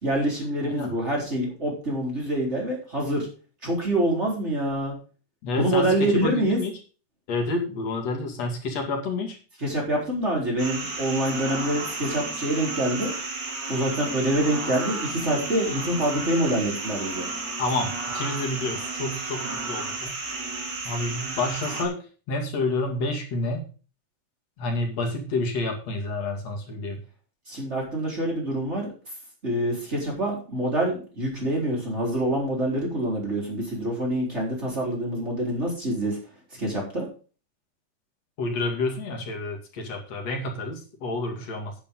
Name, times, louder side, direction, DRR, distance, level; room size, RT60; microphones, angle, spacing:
voice 1, 0.0-3.3 3.6-4.9 5.6-6.6 9.6-13.1 13.7-17.3 27.5-28.9 29.4-36.2 36.6-37.1, right 1 dB, 15° right, -2 dB, 4.0 m, -26 dB
voice 2, 5.4-6.7 7.3-9.4 17.6-20.2 20.8-23.6 24.6-27.0 38.4-41.7, left 2 dB, 45° left, 2 dB, 3.0 m, -29 dB
sound 1, 10.6-21.9, right 3 dB, 35° right, 2.3 m, -32 dB
10.0 x 9.4 x 3.8 m, 0.36 s
omnidirectional pair, 4.4 m